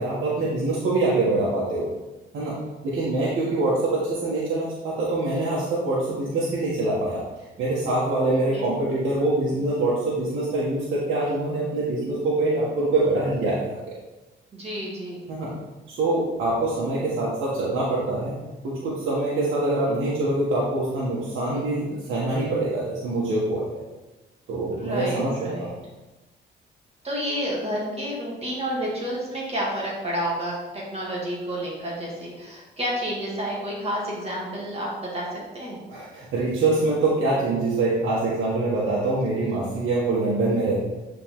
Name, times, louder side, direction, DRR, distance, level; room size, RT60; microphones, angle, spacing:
voice 1, 0.0-1.9 2.3-2.6 2.8-7.2 7.6-13.8 15.3-15.5 15.9-18.4 18.6-23.8 24.5-25.7 35.9-40.8, right 2 dB, 80° right, -7 dB, 1.6 m, -24 dB
voice 2, 14.5-15.3 24.8-25.7 27.0-35.8 39.5-39.6, equal, 30° right, -4 dB, 2.2 m, -30 dB
9.3 x 4.1 x 3.7 m, 1.1 s
cardioid pair, 90°, 20 cm